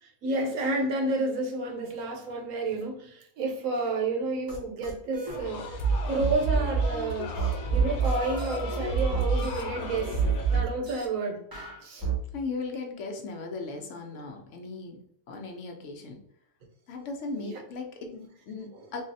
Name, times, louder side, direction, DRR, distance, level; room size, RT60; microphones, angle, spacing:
voice 1, 0.0-5.8 6.1-10.2 10.5-11.4 11.8-12.1 17.4-17.6, right 2 dB, 70° right, 1 dB, 1.1 m, -30 dB
sound 1, 4.5-4.6 4.8-5.4 6.2-6.4 7.4-8.6 9.1-9.6 10.2-11.0 11.5-12.2, right 7 dB, 20° right, 0.6 m, -30 dB
sound 2, 5.3-10.6, right 3 dB, 85° left, 1.1 m, -28 dB
voice 2, 12.3-16.2 16.9-19.0, left 3 dB, 65° left, 2 dB, 0.9 m, -37 dB
3.8 x 2.0 x 2.6 m, 0.67 s
omnidirectional pair, 1.5 m